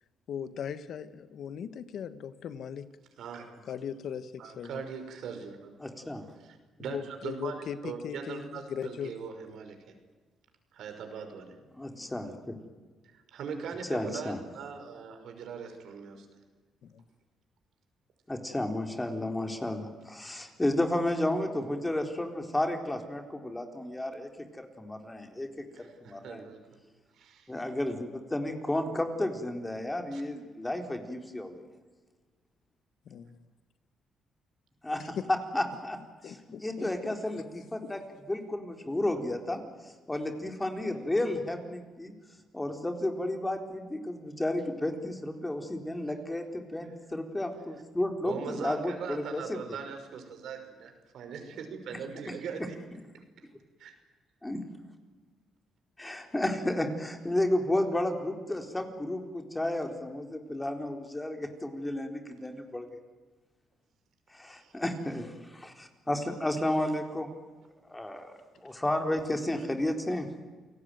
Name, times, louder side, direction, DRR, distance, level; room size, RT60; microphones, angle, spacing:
voice 1, 0.3-2.9 3.7-4.8 6.9-9.1 16.8-17.0 33.1-33.3 35.0-35.3 36.2-37.1 37.8-37.9, left 8 dB, 65° left, 12 dB, 1.4 m, -38 dB
voice 2, 4.4-5.7 6.4-10.0 10.7-11.6 13.0-16.4 25.7-26.8 27.1-27.5 30.1-30.2 48.2-52.8 53.4-53.5 53.8-54.0 64.4-64.7 68.7-68.8, right 6 dB, 75° right, 6 dB, 5.8 m, -41 dB
voice 3, 5.8-6.2 11.7-12.5 13.9-14.4 18.3-26.4 27.5-31.6 34.8-36.0 36.2-38.0 38.3-42.1 42.5-49.6 54.4-54.6 56.0-63.0 64.3-67.3 67.9-68.3 68.6-70.3, left 1 dB, 15° left, 5 dB, 4.1 m, -32 dB
29.0 x 18.5 x 9.4 m, 1.3 s
cardioid pair, 90°, 0 cm